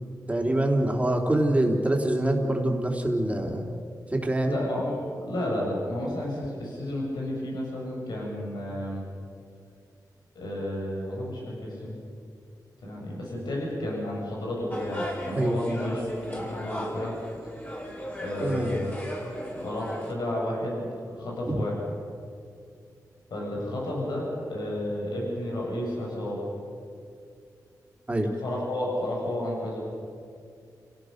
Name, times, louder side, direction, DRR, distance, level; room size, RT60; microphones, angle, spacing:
voice 1, 0.3-3.7 4.1-4.6 15.3-15.6 18.4-18.8 21.5-21.6 28.1-28.3, right 1 dB, 20° right, 1 dB, 3.6 m, -25 dB
voice 2, 4.5-9.0 10.3-11.9 12.8-17.2 18.2-18.9 19.6-21.8 23.3-26.4 28.4-29.8, left 1 dB, 85° left, -3 dB, 7.2 m, -32 dB
sound 1, 14.7-20.1, left 1 dB, 25° left, 7.0 m, -36 dB
29.5 x 17.5 x 6.8 m, 2.3 s
wide cardioid pair, 85°, 7 cm